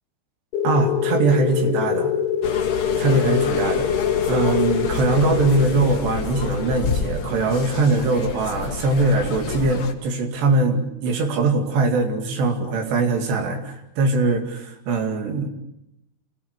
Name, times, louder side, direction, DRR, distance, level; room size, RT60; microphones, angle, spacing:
sound 1, 0.5-8.9, left 8 dB, 75° left, 3.0 m, -25 dB
voice 1, 0.6-2.1 3.0-3.9 4.3-15.5, right 3 dB, 85° right, 5 dB, 4.5 m, -21 dB
sound 2, 2.4-9.9, left 5 dB, 50° left, 1.9 m, -30 dB
26.5 x 17.0 x 8.3 m, 0.85 s
omnidirectional pair, 4.8 m